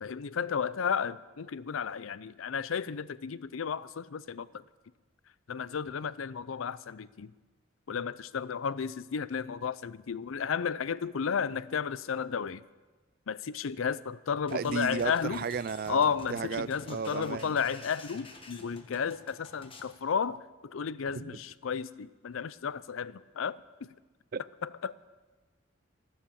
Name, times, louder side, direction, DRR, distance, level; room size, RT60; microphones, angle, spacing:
voice 1, 0.0-4.5 5.5-7.3 7.9-12.6 13.3-15.4 15.9-23.9 24.6-24.9, left 6 dB, 85° left, 18 dB, 0.5 m, -33 dB
sound 1, 14.5-20.0, left 2 dB, 25° left, 1.3 m, -51 dB
voice 2, 14.5-17.5 21.1-21.3 24.3-24.4, right 5 dB, 45° right, 18 dB, 0.4 m, -34 dB
13.5 x 13.0 x 7.1 m, 1.3 s
head